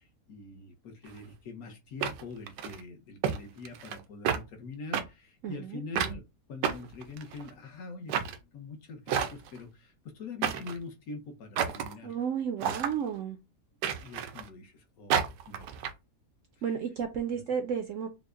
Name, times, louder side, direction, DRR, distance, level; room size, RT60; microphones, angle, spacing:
voice 1, 0.0-6.2 6.5-8.1 8.4-12.2 14.0-15.7 16.6-16.7 17.3-17.4, left 4 dB, 65° left, 4 dB, 1.2 m, -44 dB
sound 1, 1.1-1.2 2.0-2.8 3.2-3.4 3.7-4.0 4.3-4.4 4.9-5.0 6.0-6.2 6.6-7.5 8.1-8.4 9.1-9.6 10.4-10.8 11.6-11.9 12.6-12.9 13.8-14.5 15.1-15.9, right 8 dB, 90° right, 1.2 m, -30 dB
voice 2, 5.4-5.8 12.0-13.4 16.6-18.1, right 7 dB, 70° right, 6 dB, 0.7 m, -32 dB
5.4 x 2.0 x 2.4 m, 0.25 s
omnidirectional pair, 1.7 m